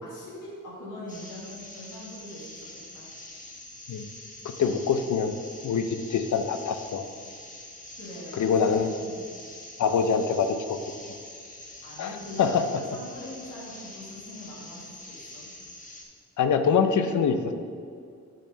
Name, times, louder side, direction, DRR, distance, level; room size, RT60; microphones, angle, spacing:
voice 1, 0.0-2.6 2.9-3.1 8.0-8.7 9.0-9.3 11.8-12.7 12.9-15.5, left 1 dB, 90° left, -5 dB, 1.8 m, -42 dB
sound 1, 1.1-16.0, left 1 dB, 25° left, 1.0 m, -45 dB
voice 2, 4.6-5.3 5.6-5.8 6.1-7.0 8.3-8.9 9.8-10.8 12.0-12.7 16.4-17.4, left 6 dB, 75° left, 8 dB, 0.6 m, -24 dB
6.1 x 4.5 x 5.5 m, 2.3 s
wide cardioid pair, 100°, 30 cm